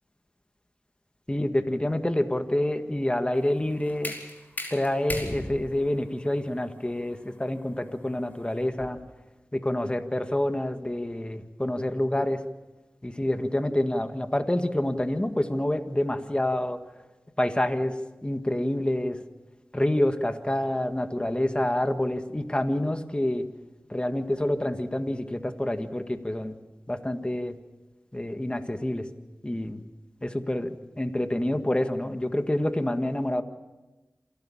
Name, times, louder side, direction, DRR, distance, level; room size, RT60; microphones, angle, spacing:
voice 1, 1.3-4.1 4.7-9.0 9.5-12.4 13.0-16.8 17.4-17.9 18.2-19.2 19.7-23.5 23.9-26.6 26.9-27.6 28.1-29.1 29.4-29.8 30.2-33.4, left 1 dB, 20° left, 8 dB, 1.7 m, -27 dB
sound 1, 3.4-9.1, left 1 dB, 40° left, 4.7 m, -39 dB
27.5 x 12.0 x 8.6 m, 1.1 s
cardioid pair, 40°, 5 cm